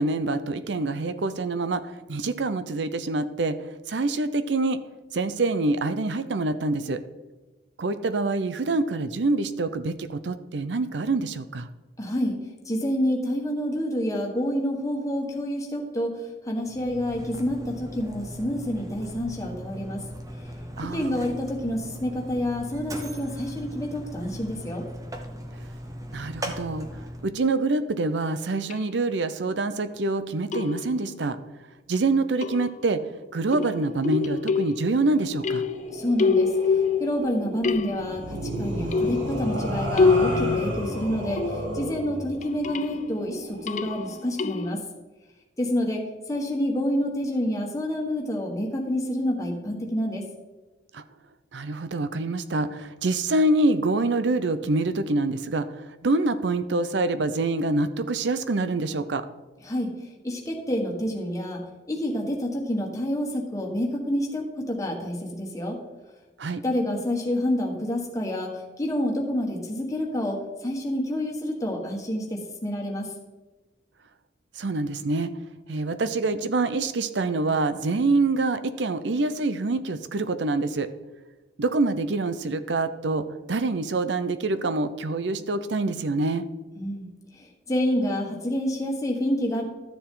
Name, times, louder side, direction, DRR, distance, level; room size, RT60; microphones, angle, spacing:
voice 1, 0.0-3.6 3.9-4.8 5.1-7.0 7.8-11.7 20.8-21.3 26.1-26.9 27.2-31.4 31.9-33.0 33.3-35.7 50.9-51.0 51.5-55.7 56.0-59.2 66.4-66.6 74.6-75.3 75.7-80.9 81.6-86.4, right 2 dB, 70° right, 11 dB, 0.6 m, -26 dB
voice 2, 12.0-12.4 12.6-20.0 20.9-24.9 35.9-44.8 45.6-46.0 46.3-50.2 59.6-59.9 60.2-61.6 61.9-65.8 66.6-73.1 86.8-87.1 87.3-89.6, equal, 20° left, 0 dB, 1.5 m, -28 dB
Mechanisms, 16.6-27.4, equal, 20° right, 0.9 m, -38 dB
sound 1, 28.7-28.8 30.5-31.1 32.4-33.0 33.5-35.1 35.4-37.3 37.6-38.3 38.9-41.9 42.4-43.0 43.7-44.8, left 4 dB, 40° left, 0.3 m, -26 dB
sound 2, 35.1-44.0, right 1 dB, 85° right, 2.1 m, -33 dB
12.5 x 7.0 x 3.8 m, 1.1 s
head